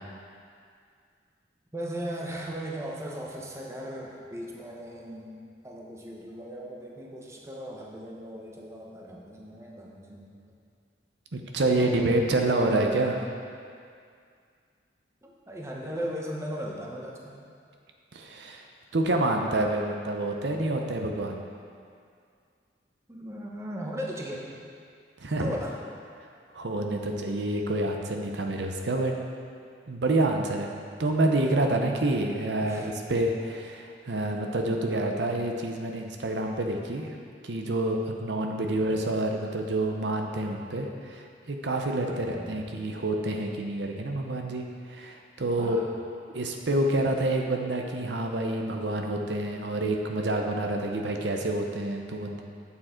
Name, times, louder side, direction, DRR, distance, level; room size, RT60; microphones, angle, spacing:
voice 1, 1.7-5.4 5.6-10.4 11.8-12.0 15.2-17.4 23.1-24.5 25.4-25.8 32.6-32.9 38.7-38.9 42.1-42.6 45.6-45.9, equal, 15° right, -2 dB, 0.9 m, -37 dB
voice 2, 11.3-13.3 18.1-18.6 18.9-21.4 25.2-25.5 26.5-29.1 29.9-30.7 31.0-37.2 37.4-45.8 46.3-52.4, right 2 dB, 75° right, 2 dB, 0.8 m, -28 dB
8.8 x 7.1 x 4.4 m, 2.3 s
head